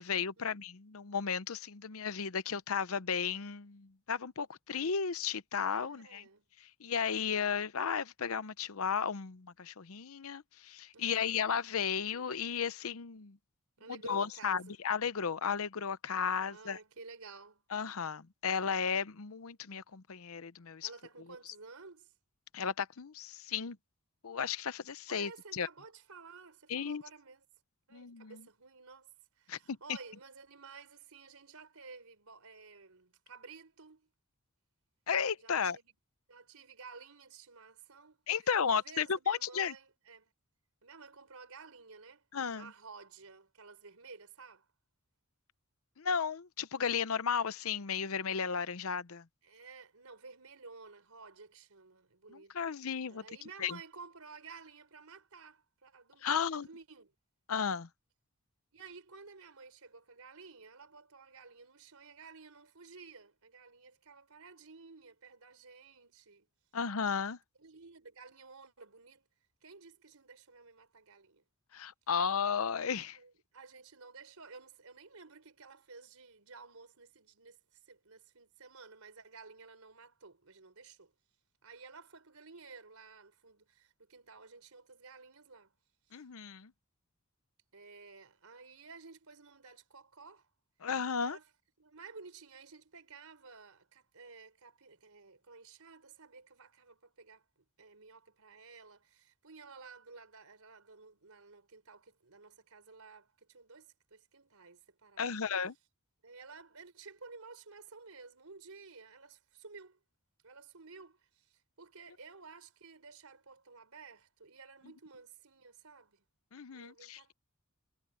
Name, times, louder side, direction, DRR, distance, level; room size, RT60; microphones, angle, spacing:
voice 1, 0.0-6.2 6.6-13.4 13.9-16.8 17.7-20.9 22.5-23.8 24.2-25.7 26.7-27.0 27.9-28.4 29.5-29.8 35.1-35.8 38.3-39.7 42.3-42.7 46.0-49.2 52.3-53.2 53.6-53.8 56.2-56.7 57.5-57.9 66.7-67.4 71.7-73.2 86.1-86.7 90.8-91.4 105.2-105.7 116.5-117.3, left 6 dB, 80° left, 0.7 m, -34 dB
voice 2, 5.8-6.5 10.9-11.4 13.8-14.7 16.4-17.6 20.8-22.1 25.1-27.4 27.9-34.1 35.4-35.9 36.3-38.2 38.6-40.3 40.8-42.2 42.6-44.7 49.4-52.7 53.1-57.1 58.7-66.5 67.6-69.3 69.6-71.4 73.1-81.1 81.6-85.7 86.1-86.2 87.7-90.5 91.2-91.4 91.8-97.4 97.8-105.3 106.2-110.0 110.4-116.2 116.7-117.3, right 4 dB, 85° right, 4.0 m, -53 dB
head